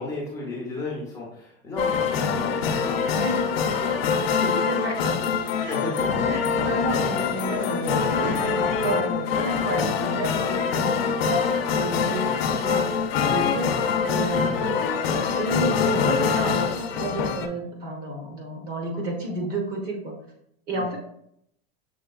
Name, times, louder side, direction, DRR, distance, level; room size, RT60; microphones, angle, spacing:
voice 1, 0.0-3.8 4.0-5.0 5.5-6.1 7.7-7.9 10.0-10.1 12.2-12.7 14.3-15.5 20.7-20.9, left 2 dB, 10° left, -5 dB, 0.7 m, -35 dB
sound 1, 1.8-17.5, left 6 dB, 75° left, 0.7 m, -24 dB
voice 2, 5.2-5.8 6.3-11.4 11.8-12.3 12.6-13.0 13.2-14.6 15.4-20.2 20.7-21.0, right 2 dB, 30° right, 1 dB, 1.1 m, -31 dB
6.5 x 3.4 x 2.3 m, 0.73 s
supercardioid pair, 170°, 30 cm